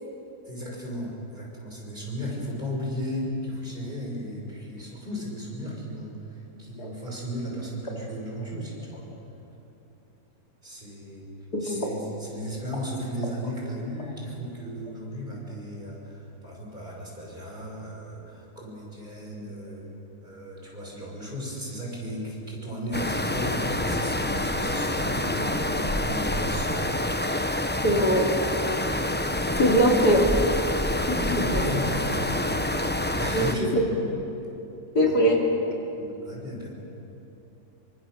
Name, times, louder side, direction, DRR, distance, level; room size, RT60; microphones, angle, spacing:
voice 1, 0.5-9.0 10.6-11.3 11.6-19.9 20.2-26.7 31.0-32.3 33.2-33.8 35.0-35.2 36.0-36.7, equal, 30° right, -3 dB, 6.1 m, -35 dB
voice 2, 11.5-12.0 27.8-28.2 29.6-30.2 31.1-31.2 33.3-33.8 35.0-35.4, equal, 75° left, -1 dB, 3.5 m, -21 dB
sound 1, 22.9-33.5, left 1 dB, 10° left, 0.5 m, -27 dB
28.0 x 24.0 x 6.6 m, 3.0 s
omnidirectional pair, 1.7 m